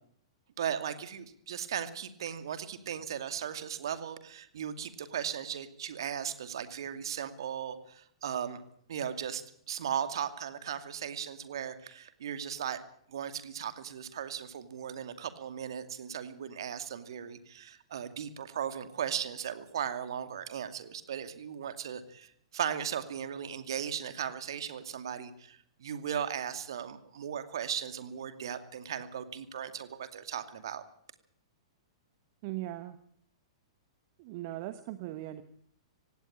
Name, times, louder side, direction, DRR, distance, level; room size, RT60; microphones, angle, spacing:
voice 1, 0.6-8.6 8.9-12.8 13.1-30.8, right 8 dB, 60° right, 10 dB, 2.4 m, -37 dB
voice 2, 32.4-33.0 34.2-35.4, right 15 dB, 40° right, 11 dB, 1.2 m, -39 dB
18.0 x 17.0 x 8.7 m, 0.66 s
figure-of-eight pair, 105°, 3 cm